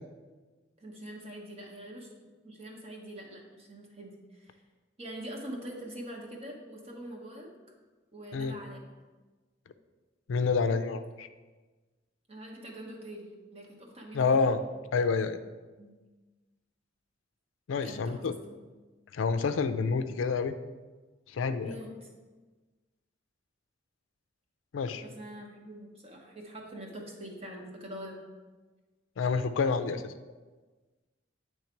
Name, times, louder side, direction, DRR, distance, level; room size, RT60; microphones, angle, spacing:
voice 1, 0.8-2.1 2.4-4.6 5.0-7.5 8.1-8.8 12.3-14.5 15.8-15.9 17.8-18.6 21.6-22.1 25.0-28.2, right 1 dB, 30° right, 0 dB, 1.1 m, -44 dB
voice 2, 10.3-11.3 14.1-14.6 14.9-15.4 17.7-18.3 19.1-20.5 21.3-21.8 24.7-25.0 29.2-30.1, left 5 dB, 80° left, 10 dB, 0.4 m, -28 dB
8.5 x 3.2 x 4.4 m, 1.3 s
head